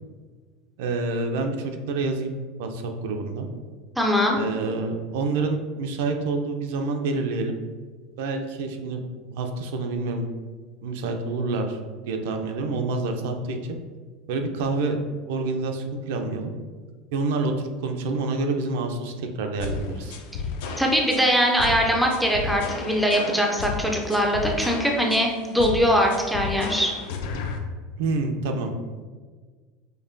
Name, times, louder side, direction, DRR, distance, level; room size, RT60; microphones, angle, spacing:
voice 1, 0.8-2.3 2.6-3.5 4.4-7.6 8.2-9.0 9.3-10.3 10.8-11.8 12.1-13.7 14.3-15.0 15.3-16.5 17.1-20.2 28.0-28.7, right 3 dB, 70° right, 5 dB, 0.4 m, -27 dB
voice 2, 4.0-4.4 20.8-26.9, equal, ahead, 0 dB, 0.3 m, -22 dB
sound 1, 19.6-27.6, left 5 dB, 65° left, 0.4 m, -33 dB
5.2 x 2.2 x 2.5 m, 1.5 s
cardioid pair, 175°, 0 cm